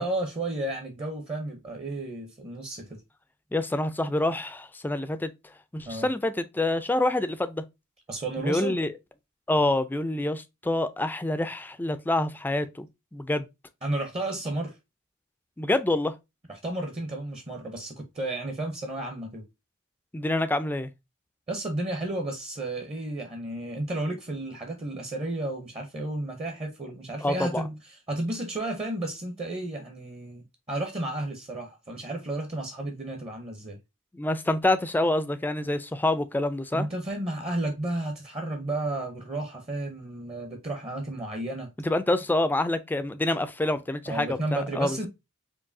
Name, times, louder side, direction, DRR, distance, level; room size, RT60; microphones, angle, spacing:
voice 1, 0.0-3.0 5.9-6.1 8.1-8.8 13.8-14.7 16.5-19.4 21.5-27.8 28.1-33.8 36.7-41.7 44.1-45.1, right 1 dB, 30° right, 0.7 m, -32 dB
voice 2, 3.5-5.3 5.7-7.6 8.4-8.9 9.5-12.9 13.1-13.5 15.6-16.1 20.1-20.9 27.2-27.6 34.1-36.9 41.8-45.0, left 2 dB, 10° left, 0.3 m, -26 dB
4.6 x 2.7 x 2.6 m
head